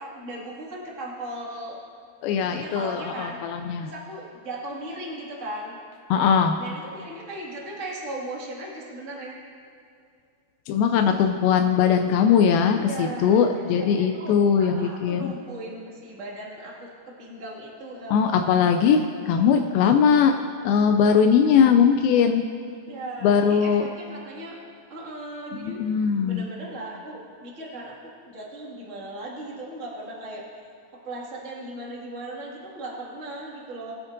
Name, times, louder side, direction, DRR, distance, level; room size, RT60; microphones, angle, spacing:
voice 1, 0.0-1.7 2.4-3.4 3.8-5.8 6.6-9.4 12.7-18.2 22.9-24.6 24.9-25.8 26.2-30.4 31.0-33.9, right 1 dB, 30° right, -4 dB, 1.6 m, -37 dB
voice 2, 2.2-3.9 6.1-6.6 10.7-15.3 18.1-20.4 20.6-22.4 23.2-23.9 25.6-26.4, left 7 dB, 85° left, 5 dB, 2.3 m, -20 dB
21.0 x 9.4 x 2.6 m, 2.4 s
omnidirectional pair, 4.3 m